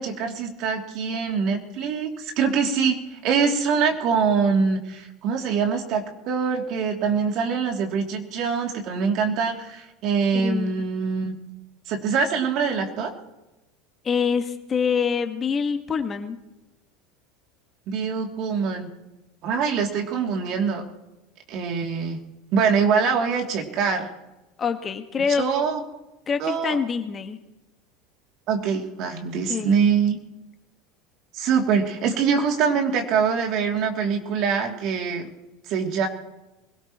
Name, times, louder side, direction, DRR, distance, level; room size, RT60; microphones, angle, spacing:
voice 1, 0.0-11.3 11.9-13.1 17.9-18.9 19.4-20.8 21.5-22.2 22.5-24.1 25.4-25.8 26.4-26.8 28.5-30.2 31.3-35.3 35.7-36.1, right 6 dB, 55° right, 2 dB, 2.8 m, -24 dB
voice 2, 10.3-10.9 14.0-16.4 24.6-25.4 26.3-27.4 29.5-29.7, left 6 dB, 30° left, 7 dB, 1.6 m, -25 dB
23.5 x 17.5 x 3.1 m, 0.98 s
hypercardioid pair, 90°, 0 cm